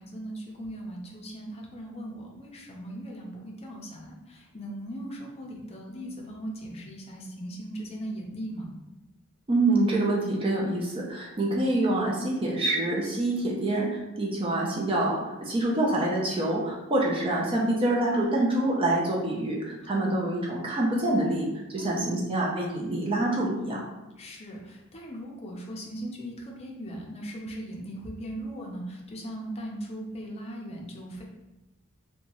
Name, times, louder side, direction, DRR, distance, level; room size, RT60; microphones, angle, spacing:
voice 1, 0.0-8.7 19.8-20.2 21.8-22.1 24.2-31.2, right 1 dB, 30° left, -2 dB, 0.5 m, -39 dB
voice 2, 9.5-21.4 21.7-23.8, right 2 dB, 25° right, -3 dB, 0.4 m, -26 dB
2.8 x 2.2 x 2.9 m, 1.0 s
head